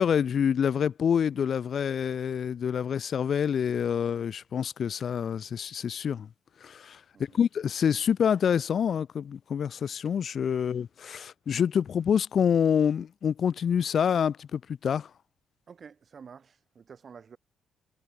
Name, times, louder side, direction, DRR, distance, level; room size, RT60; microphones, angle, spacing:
voice 1, 0.0-6.3 6.6-7.0 7.3-15.1, left 8 dB, 55° left, 0.5 m, -27 dB
voice 2, 15.7-17.4, right 6 dB, 45° right, 6.7 m, -49 dB
cardioid pair, 90°, 0 cm